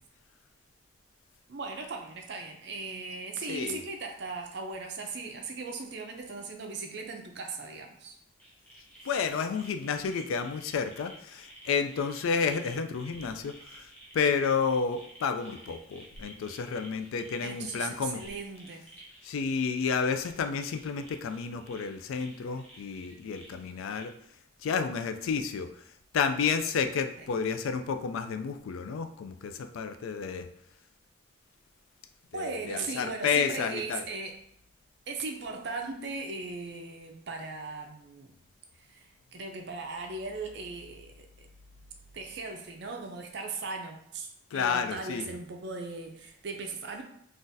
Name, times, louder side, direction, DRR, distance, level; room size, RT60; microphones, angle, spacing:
voice 1, 1.5-8.2 17.4-18.9 32.3-34.3 35.1-38.3 38.9-41.3 42.1-47.0, right 3 dB, 55° right, 3 dB, 0.5 m, -38 dB
voice 2, 3.5-3.8 9.0-18.2 19.2-24.1 24.6-25.8 26.1-30.5 32.3-34.0 44.5-45.3, left 6 dB, 80° left, 8 dB, 0.3 m, -31 dB
sound 1, 8.4-24.1, right 1 dB, 5° left, 0.6 m, -53 dB
3.8 x 2.4 x 2.6 m, 0.72 s
head